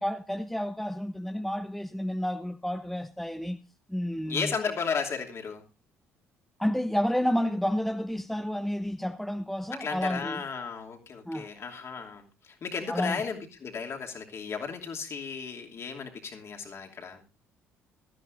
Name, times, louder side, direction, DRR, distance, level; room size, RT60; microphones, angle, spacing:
voice 1, 0.0-3.6 3.9-4.5 6.6-10.4 11.2-11.5 12.9-13.2, equal, 5° left, 0.8 m, -30 dB
voice 2, 4.3-5.6 9.7-12.2 12.6-17.2, left 5 dB, 40° left, 2.8 m, -34 dB
18.5 x 13.5 x 2.6 m
figure-of-eight pair, 50°, 7 cm